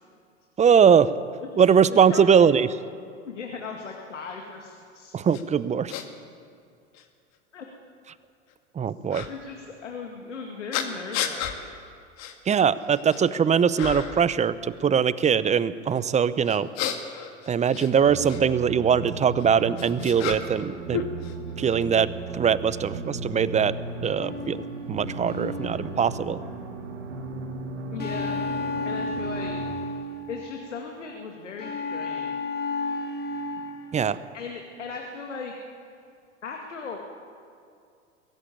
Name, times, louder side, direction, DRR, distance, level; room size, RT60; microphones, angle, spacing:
voice 1, 0.6-1.1 1.6-2.7 5.1-5.9 8.7-9.3 12.5-16.7 17.5-21.1 21.6-23.7 24.0-24.6 24.9-26.4 33.9-34.2, right 7 dB, 20° right, 16 dB, 0.7 m, -21 dB
voice 2, 1.9-2.4 3.2-5.2 7.5-7.7 9.2-11.7 27.9-28.4 28.8-29.5 30.3-32.4 34.3-35.5 36.4-37.0, left 5 dB, 85° left, 1 dB, 2.2 m, -37 dB
sound 1, 5.3-5.4 5.9-6.0 6.9-7.0 9.1-9.3 10.7-11.6 12.2-12.3 12.8-13.3 13.8-14.2 16.5-18.4 19.4-20.7 20.9-21.8, left 9 dB, 50° left, 2.1 m, -32 dB
sound 2, 18.0-29.7, right 3 dB, 80° right, 2.3 m, -36 dB
sound 3, 24.2-26.7 28.0-30.8 31.6-34.2, left 3 dB, 25° left, 2.3 m, -33 dB
22.5 x 14.0 x 9.1 m, 2.4 s
hypercardioid pair, 85°, 35 cm